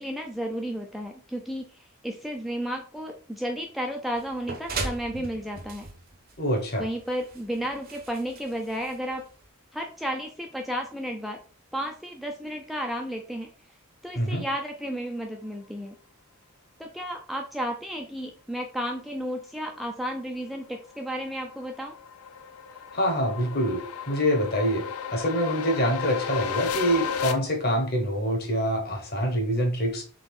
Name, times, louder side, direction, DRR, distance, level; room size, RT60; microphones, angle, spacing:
voice 1, 0.0-5.9 6.8-9.3 9.7-11.4 11.7-13.5 14.0-15.9 16.8-21.9, equal, ahead, 2 dB, 0.3 m, -33 dB
sound 1, 4.2-9.5, right 3 dB, 40° right, 0.7 m, -38 dB
voice 2, 6.4-6.9 14.2-14.4 22.9-24.8 25.1-30.0, equal, 45° left, 3 dB, 1.1 m, -25 dB
sound 2, 20.7-27.3, left 6 dB, 80° left, 0.5 m, -33 dB
3.8 x 3.4 x 3.6 m, 0.41 s
head